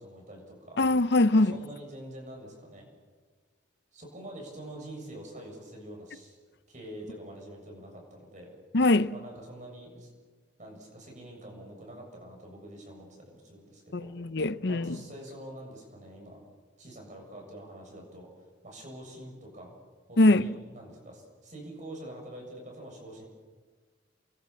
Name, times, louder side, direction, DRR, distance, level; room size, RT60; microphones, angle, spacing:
voice 1, 0.0-0.8 1.3-2.9 3.9-6.4 6.7-8.5 9.1-10.1 10.6-14.1 14.7-16.4 16.8-18.3 18.6-19.7 20.1-23.2, right 1 dB, 40° right, 7.2 m, -45 dB
voice 2, 0.8-1.6 8.7-9.1 13.9-15.0 20.2-20.5, left 2 dB, 60° left, 0.7 m, -22 dB
29.0 x 22.0 x 7.3 m
head